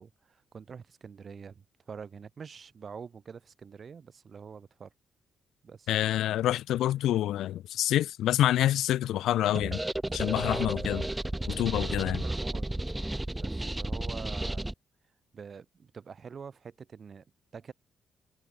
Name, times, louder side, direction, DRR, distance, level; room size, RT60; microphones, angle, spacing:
voice 1, 0.0-4.9 5.6-5.9 10.5-10.9 11.9-12.7 13.3-14.7 15.3-17.2 17.5-17.7, right 6 dB, 50° right, 5.6 m, -45 dB
voice 2, 5.9-9.8 10.1-11.0 11.5-12.2, left 13 dB, 85° left, 1.6 m, -27 dB
sound 1, 9.5-14.7, right 1 dB, 10° right, 2.2 m, -33 dB
cardioid pair, 70°, 0 cm